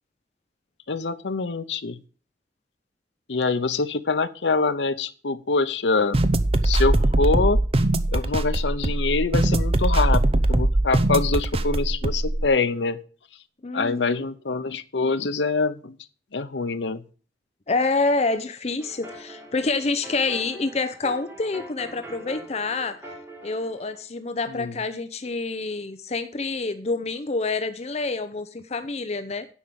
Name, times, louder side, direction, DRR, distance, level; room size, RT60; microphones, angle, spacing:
voice 1, 0.9-2.0 3.3-6.2 6.6-7.6 8.1-13.0 13.7-16.0 16.3-17.0 24.5-24.8, left 3 dB, 85° left, 0.8 m, -25 dB
sound 1, 6.1-12.5, right 1 dB, 35° right, 0.7 m, -21 dB
voice 2, 13.6-14.3 17.7-23.0 23.4-29.5, left 3 dB, 40° left, 0.6 m, -27 dB
sound 2, 18.8-24.0, right 1 dB, 15° right, 2.7 m, -42 dB
10.0 x 5.4 x 7.5 m
head